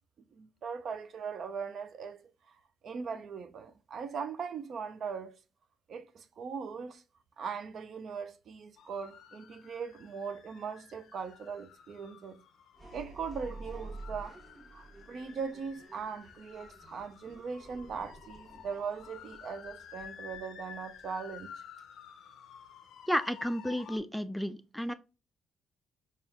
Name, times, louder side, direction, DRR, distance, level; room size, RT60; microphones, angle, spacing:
voice 1, 0.3-2.2 2.8-5.4 5.9-7.0 7.4-12.4 12.9-14.4 14.7-21.5, right 6 dB, 60° right, 0.5 m, -40 dB
sound 1, 8.8-24.0, left 8 dB, 75° left, 0.5 m, -52 dB
sound 2, 12.7-21.4, right 2 dB, 35° right, 1.3 m, -50 dB
voice 2, 23.1-24.9, equal, ahead, 0.3 m, -32 dB
4.3 x 2.4 x 3.4 m
cardioid pair, 90°, 0 cm